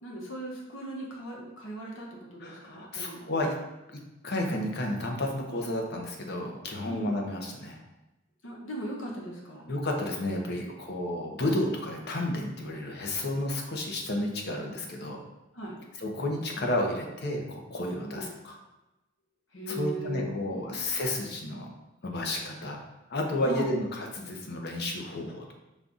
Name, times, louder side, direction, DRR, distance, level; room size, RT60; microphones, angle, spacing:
voice 1, 0.0-3.3 6.9-7.1 8.4-9.7 15.5-15.8 18.0-18.3 19.5-20.8 23.4-23.7, equal, 75° left, -1 dB, 1.0 m, -38 dB
voice 2, 2.4-3.6 3.9-7.8 9.7-15.2 16.0-18.6 19.7-21.7 22.0-22.8 23.1-25.5, left 1 dB, 55° left, 1 dB, 0.7 m, -32 dB
5.2 x 2.4 x 3.9 m, 0.98 s
head